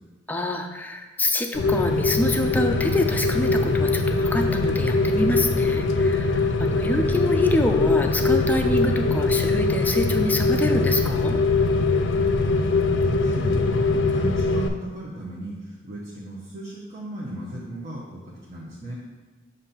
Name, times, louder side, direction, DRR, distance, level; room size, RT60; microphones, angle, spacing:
voice 1, 0.3-11.4, left 1 dB, 10° left, 4 dB, 0.4 m, -26 dB
Rain, 1.5-14.7, left 3 dB, 70° left, 0.4 m, -22 dB
voice 2, 12.4-18.9, right 1 dB, 35° right, -6 dB, 0.9 m, -36 dB
7.0 x 2.7 x 5.6 m, 1.3 s
head